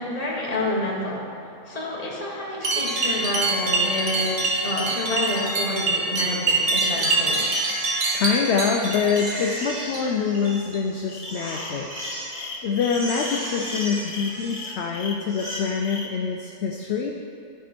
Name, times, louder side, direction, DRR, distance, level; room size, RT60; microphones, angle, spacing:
voice 1, 0.0-7.5, left 1 dB, 30° left, -4 dB, 1.5 m, -29 dB
sound 1, 2.6-10.0 10.3-10.8 11.1-11.4 12.0-12.2 12.8-12.9 13.6-13.7 14.4-14.5, right 2 dB, 60° right, 1.4 m, -25 dB
Crying sobbing, 7.0-8.7 9.1-10.9 11.2-12.5 12.8-14.9 15.2-15.6, equal, 80° right, 2.7 m, -36 dB
voice 2, 8.1-11.9 12.6-17.2, left 6 dB, 65° left, 1 dB, 0.8 m, -25 dB
sound 2, 11.1-16.1, left 4 dB, 90° left, 1.2 m, -36 dB
13.0 x 4.7 x 4.3 m, 2.5 s
omnidirectional pair, 1.4 m